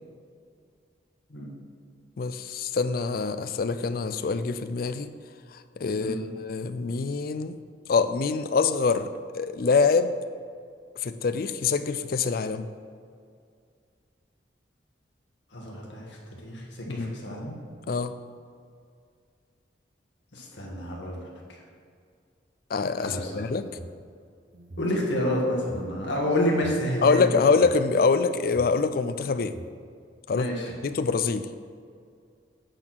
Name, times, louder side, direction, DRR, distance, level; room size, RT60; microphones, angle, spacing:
voice 1, 2.2-5.1 5.5-7.6 7.9-10.1 11.0-12.7 16.9-17.2 17.9-18.1 22.7-23.7 27.0-29.6 30.3-30.5 30.8-31.5, left 4 dB, 55° left, 11 dB, 0.4 m, -25 dB
voice 2, 15.5-17.6 20.3-21.2 23.0-23.5 24.8-27.3 30.3-30.7, left 1 dB, 85° left, -2 dB, 1.7 m, -29 dB
sound 1, 23.3-24.0 24.5-25.9 26.5-27.8 28.4-29.7, right 1 dB, 55° right, 0.8 m, -45 dB
8.9 x 4.2 x 6.0 m, 2.2 s
head